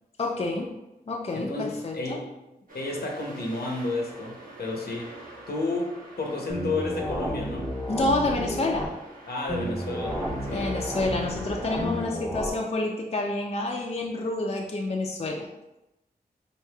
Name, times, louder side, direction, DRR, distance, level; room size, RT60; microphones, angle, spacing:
voice 1, 0.2-0.8 1.1-2.2 7.9-8.9 10.5-15.5, left 2 dB, 35° left, 0 dB, 0.5 m, -28 dB
voice 2, 1.3-2.3 2.7-5.1 5.5-7.7 9.3-10.7, left 2 dB, 70° left, 0 dB, 0.8 m, -31 dB
sound 1, 2.7-12.1, right 2 dB, 55° right, 1.0 m, -45 dB
sound 2, 6.5-8.9 9.5-12.5, equal, ahead, 0.9 m, -32 dB
4.7 x 2.6 x 2.3 m, 0.94 s
cardioid pair, 40°, 17 cm